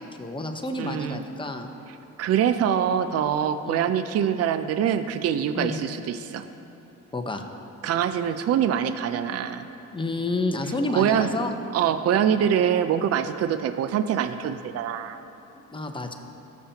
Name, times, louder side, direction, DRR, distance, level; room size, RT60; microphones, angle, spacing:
voice 1, 0.0-1.7 3.6-3.9 5.5-5.8 7.1-7.5 9.9-11.6 12.2-12.3 15.7-16.1, left 2 dB, 15° left, 4 dB, 0.9 m, -30 dB
voice 2, 0.8-1.2 2.2-6.4 7.8-9.7 10.9-11.3 11.7-15.2, right 9 dB, 55° right, 10 dB, 0.5 m, -24 dB
17.5 x 7.2 x 2.9 m, 2.9 s
cardioid pair, 90°, 30 cm